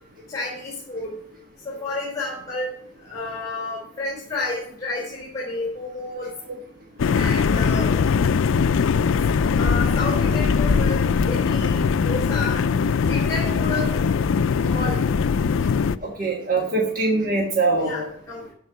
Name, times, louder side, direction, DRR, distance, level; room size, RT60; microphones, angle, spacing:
voice 1, 0.3-1.1 1.6-2.7 3.0-6.3 7.1-7.9 9.6-11.8 12.0-12.7 13.1-14.0 14.7-15.0 17.8-18.4, left 2 dB, 20° left, -3 dB, 3.3 m, -30 dB
sound 1, 7.0-16.0, left 5 dB, 80° left, 0.4 m, -21 dB
voice 2, 16.0-18.1, right 3 dB, 45° right, -1 dB, 1.5 m, -23 dB
13.0 x 4.6 x 5.7 m, 0.67 s
head